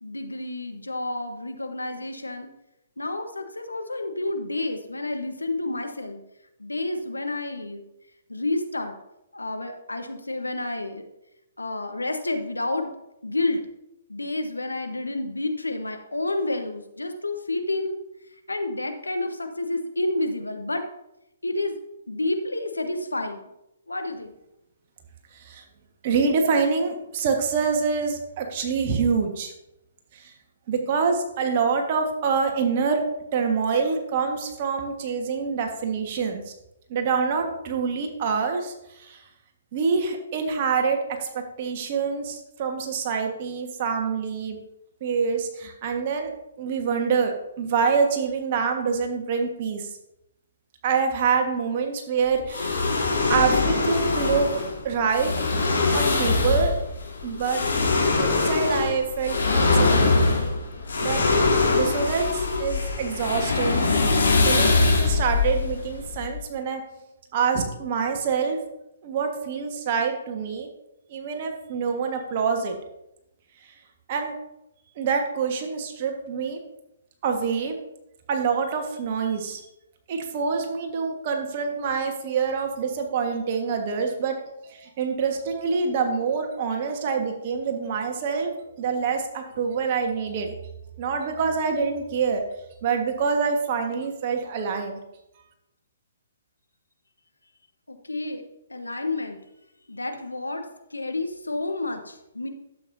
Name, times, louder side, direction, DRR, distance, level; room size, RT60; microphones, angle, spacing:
voice 1, 0.0-2.5 3.0-6.2 6.6-7.8 8.3-9.0 9.3-11.0 11.6-12.9 13.2-13.6 14.1-18.0 18.5-20.8 21.4-21.8 22.1-23.4 23.9-24.3 97.9-98.4 98.7-99.4 99.9-102.5, left 2 dB, 85° left, 6 dB, 1.1 m, -29 dB
voice 2, 26.0-29.5 30.1-30.3 30.7-33.0 33.3-36.5 36.9-39.2 39.7-44.6 45.0-46.3 46.6-49.9 50.8-53.0 53.3-54.5 54.8-55.3 55.9-56.7 57.2-57.7 58.2-60.2 61.0-61.2 61.7-63.8 64.4-66.8 67.3-68.6 69.0-70.7 71.1-72.7 74.1-74.3 75.0-76.6 77.2-77.8 78.3-79.6 80.1-84.4 84.6-88.5 88.8-90.5 91.0-95.0, right 5 dB, 40° right, 4 dB, 1.4 m, -26 dB
sound 1, 52.5-66.4, left 3 dB, 70° left, 2.3 m, -23 dB
11.5 x 7.6 x 2.7 m, 0.87 s
figure-of-eight pair, 130°, 0 cm